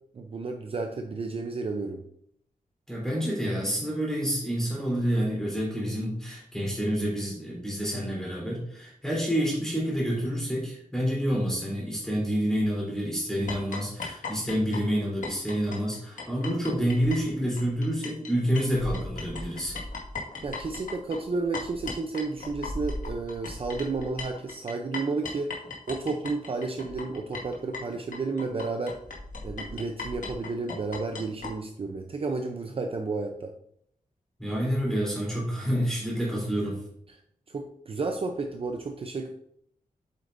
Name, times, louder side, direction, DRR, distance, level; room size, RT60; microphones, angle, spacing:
voice 1, 0.1-2.0 20.4-25.5 25.9-29.0 29.4-33.5 37.5-39.3, right 3 dB, 40° right, 4 dB, 0.6 m, -32 dB
voice 2, 2.9-19.8 34.4-36.8, equal, 5° left, -5 dB, 3.4 m, -28 dB
sound 1, 13.5-18.3 18.5-31.5, left 3 dB, 65° left, 1.8 m, -37 dB
8.2 x 7.7 x 2.6 m, 0.69 s
wide cardioid pair, 180°, 14 cm